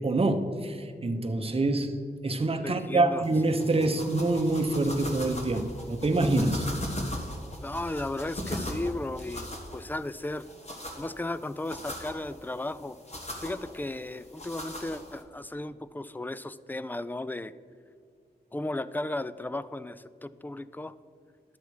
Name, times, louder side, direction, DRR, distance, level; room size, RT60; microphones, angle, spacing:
voice 1, 0.0-6.7, right 2 dB, 35° right, 0.8 m, -26 dB
voice 2, 2.6-3.3 3.7-3.8 7.6-10.5 11.0-13.0 13.4-17.5 18.5-20.9, left 2 dB, 10° left, 0.3 m, -35 dB
sound 1, 3.2-15.2, left 1 dB, 40° left, 1.5 m, -39 dB
11.5 x 6.8 x 4.8 m
wide cardioid pair, 100°, 17 cm